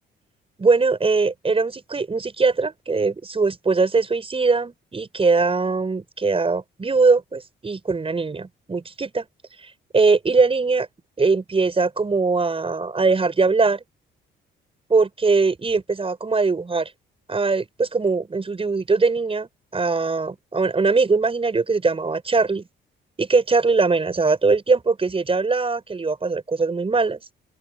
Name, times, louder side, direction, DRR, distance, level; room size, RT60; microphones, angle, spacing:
voice 1, 0.6-9.2 9.9-10.9 11.2-13.8 14.9-16.9 17.3-22.7 23.2-27.2, right 4 dB, 30° right, 6.5 m, -21 dB
open air
cardioid pair, 90°, 20 cm